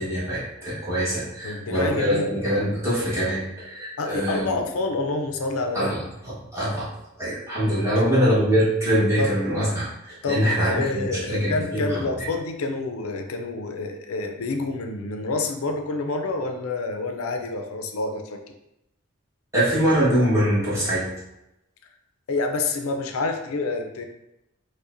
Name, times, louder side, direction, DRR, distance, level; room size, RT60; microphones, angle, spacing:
voice 1, 0.0-4.6 5.7-6.9 7.2-12.3 19.5-21.1, equal, 15° right, -9 dB, 1.2 m, -23 dB
voice 2, 1.4-2.3 4.0-5.9 9.2-9.3 10.2-18.4 22.3-24.0, left 3 dB, 90° left, 5 dB, 0.5 m, -28 dB
4.8 x 2.2 x 2.6 m, 0.87 s
head